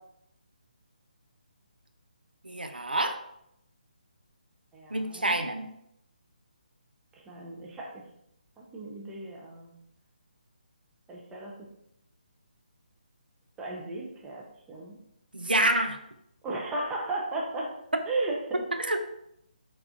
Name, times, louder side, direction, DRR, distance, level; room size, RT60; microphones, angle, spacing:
voice 1, 2.4-3.2 4.9-5.7 15.3-16.0 18.8-19.0, right 1 dB, 90° right, 6 dB, 0.4 m, -27 dB
voice 2, 4.7-5.3 7.3-8.0 8.6-9.7 11.1-11.5 13.6-14.4 14.7-15.0 16.4-17.7 18.1-18.6, right 2 dB, 10° right, -3 dB, 0.4 m, -35 dB
3.4 x 2.3 x 2.5 m, 0.76 s
figure-of-eight pair, 145°, 5 cm